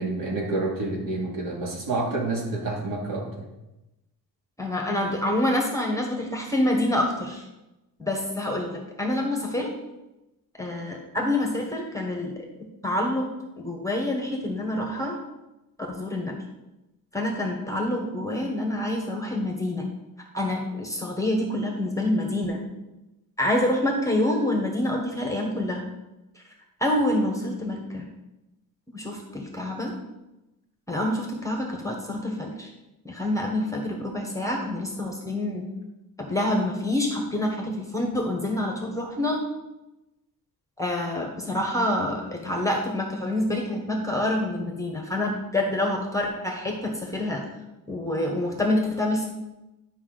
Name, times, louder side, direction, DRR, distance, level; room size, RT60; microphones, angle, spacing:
voice 1, 0.0-3.3, right 2 dB, 65° right, -2 dB, 2.2 m, -28 dB
voice 2, 4.6-7.4 8.0-9.7 10.6-13.3 13.6-15.2 15.9-16.4 17.1-19.9 20.3-22.6 23.4-25.8 26.8-28.1 28.9-29.9 30.9-32.7 33.0-35.6 36.2-39.4 40.8-47.4 47.9-49.2, left 1 dB, 10° left, 1 dB, 1.1 m, -27 dB
10.5 x 5.6 x 3.8 m, 0.97 s
wide cardioid pair, 170°, 36 cm